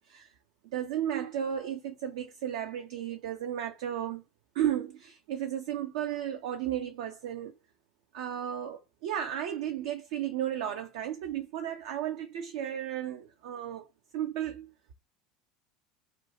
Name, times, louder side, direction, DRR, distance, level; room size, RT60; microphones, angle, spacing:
voice 1, 0.7-4.2 4.6-7.5 8.1-13.9 14.1-14.7, right 10 dB, 60° right, 0.3 m, -34 dB
2.4 x 2.1 x 2.7 m
figure-of-eight pair, 75°, 3 cm